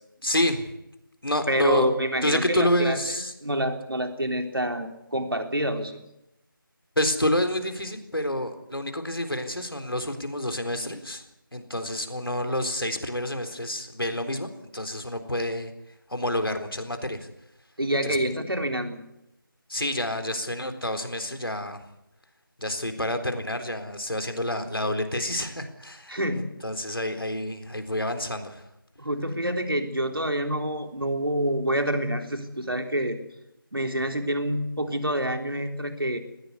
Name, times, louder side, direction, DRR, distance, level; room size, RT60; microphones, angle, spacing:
voice 1, 0.2-0.7 1.2-1.9 2.2-3.3 7.0-11.2 11.5-15.7 16.1-17.3 18.0-18.2 19.7-21.8 22.6-28.6, left 1 dB, 85° left, 7 dB, 3.9 m, -28 dB
voice 2, 1.5-6.0 17.8-19.0 26.1-26.5 29.0-33.2 33.7-36.2, right 1 dB, 85° right, 5 dB, 3.8 m, -27 dB
20.5 x 15.5 x 9.7 m, 0.86 s
figure-of-eight pair, 170°, 12 cm